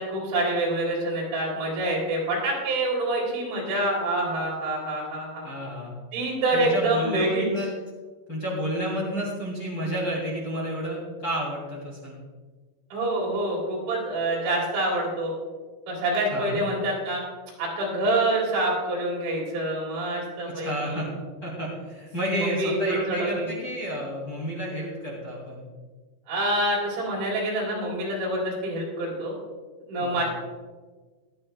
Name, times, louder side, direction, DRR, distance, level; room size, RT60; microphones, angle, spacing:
voice 1, 0.0-5.5 6.1-7.5 12.9-15.3 15.9-17.2 17.6-21.0 22.4-23.5 26.3-29.3 29.9-30.2, right 1 dB, 80° right, -3 dB, 6.4 m, -26 dB
voice 2, 5.4-5.9 6.5-7.7 8.3-12.2 16.3-16.7 20.4-21.1 21.4-25.6 30.0-30.2, equal, 30° left, -4 dB, 2.6 m, -31 dB
18.0 x 12.5 x 2.3 m, 1.4 s
omnidirectional pair, 5.9 m